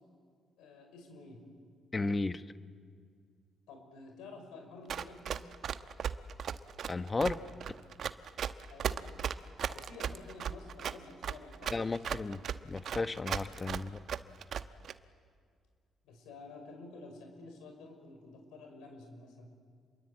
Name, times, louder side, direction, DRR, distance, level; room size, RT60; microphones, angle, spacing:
voice 1, 0.6-1.4 3.7-5.5 8.7-9.1 9.7-12.2 16.0-19.5, left 3 dB, 85° left, 4 dB, 5.6 m, -50 dB
voice 2, 1.9-2.4 6.9-7.4 11.7-12.4 12.7-14.0, left 3 dB, 30° left, 12 dB, 1.1 m, -33 dB
Run, 4.9-14.9, right 8 dB, 65° right, 1.0 m, -36 dB
29.0 x 22.5 x 8.7 m, 2.1 s
supercardioid pair, 70°, 0 cm